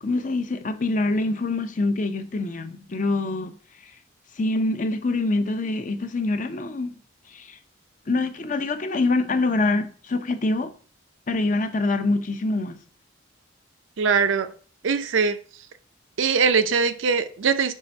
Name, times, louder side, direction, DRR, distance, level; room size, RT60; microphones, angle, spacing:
voice 1, 0.0-3.5 4.4-7.0 7.3-7.6 8.1-10.7 11.3-12.8, left 2 dB, 40° left, 0.6 m, -25 dB
voice 2, 14.0-14.5 14.8-15.4 16.2-17.7, right 5 dB, 75° right, 0.5 m, -21 dB
5.5 x 3.5 x 5.1 m
head